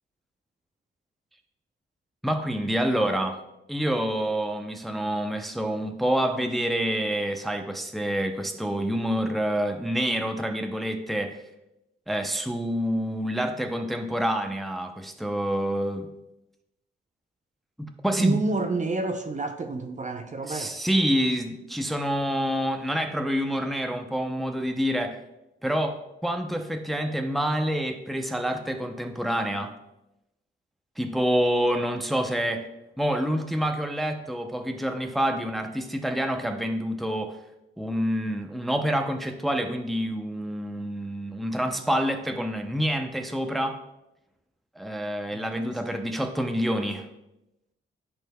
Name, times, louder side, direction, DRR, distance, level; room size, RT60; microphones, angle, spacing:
voice 1, 2.2-3.4 3.7-11.4 12.1-16.1 17.8-18.4 20.5-25.2 25.6-29.7 31.0-32.7 33.0-37.4 37.8-43.8 44.8-47.1, equal, ahead, 0.6 m, -27 dB
voice 2, 18.2-20.7 45.3-45.4, right 3 dB, 35° right, 0.7 m, -29 dB
11.0 x 4.3 x 2.2 m
cardioid pair, 60°, 21 cm